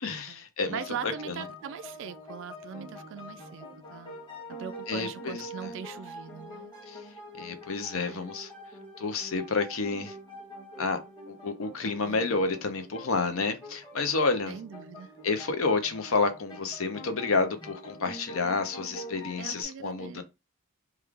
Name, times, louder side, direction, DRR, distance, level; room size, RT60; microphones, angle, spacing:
voice 1, 0.0-1.4 4.9-5.7 6.9-7.0 7.4-8.5 9.0-10.1 10.8-11.0 11.3-14.5 15.2-20.2, left 4 dB, 70° left, 0.6 m, -30 dB
sound 1, 0.7-19.6, equal, 20° left, 1.2 m, -45 dB
voice 2, 0.7-4.2 4.5-6.7 8.0-8.2 12.0-12.4 14.5-15.1 19.4-20.2, right 7 dB, 60° right, 0.3 m, -41 dB
3.1 x 2.3 x 3.6 m
head